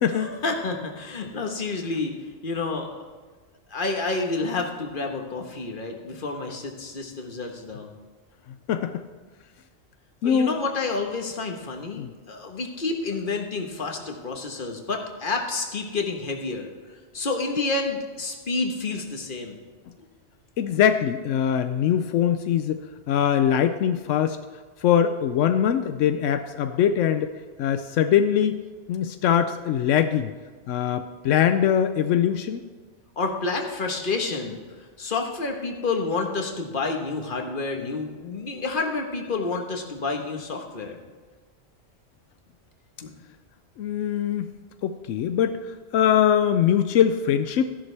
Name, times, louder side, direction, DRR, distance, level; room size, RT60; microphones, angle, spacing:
voice 1, 0.1-2.1 2.4-3.1 3.7-7.9 10.2-16.7 17.1-19.6 20.0-20.1 33.2-34.6 35.0-41.0 43.0-43.1, left 3 dB, 45° left, 3 dB, 1.4 m, -29 dB
voice 2, 8.7-9.0 10.2-10.5 12.0-12.1 20.6-24.4 24.8-27.3 27.6-28.6 28.9-30.3 30.7-32.6 43.8-44.5 44.8-47.8, left 9 dB, 85° left, 9 dB, 0.9 m, -22 dB
13.5 x 11.0 x 3.3 m, 1.4 s
omnidirectional pair, 1.2 m